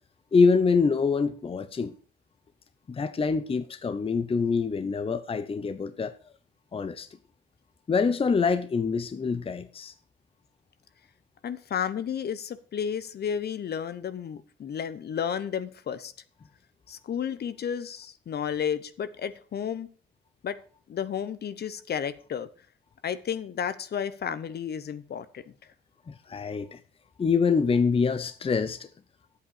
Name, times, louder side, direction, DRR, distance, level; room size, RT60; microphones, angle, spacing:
voice 1, 0.3-1.9 2.9-6.1 6.7-7.1 7.9-9.9 26.1-26.8 27.2-28.9, left 5 dB, 30° left, 0.7 m, -25 dB
voice 2, 11.4-16.1 16.9-19.9 20.4-20.6 20.9-22.5 23.0-25.5, left 8 dB, 55° left, 1.0 m, -32 dB
8.9 x 8.2 x 6.6 m
cardioid pair, 90°, 20 cm